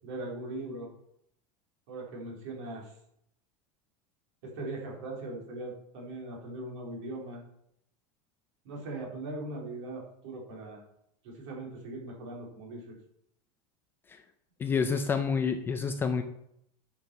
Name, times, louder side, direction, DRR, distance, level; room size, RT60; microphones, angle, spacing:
voice 1, 0.0-0.9 1.9-3.0 4.4-7.4 8.6-10.8 11.2-12.9, right 2 dB, 55° right, -2 dB, 3.9 m, -40 dB
voice 2, 14.6-16.2, left 5 dB, 15° left, 7 dB, 0.4 m, -28 dB
10.0 x 6.0 x 5.8 m, 0.74 s
supercardioid pair, 180°, 17 cm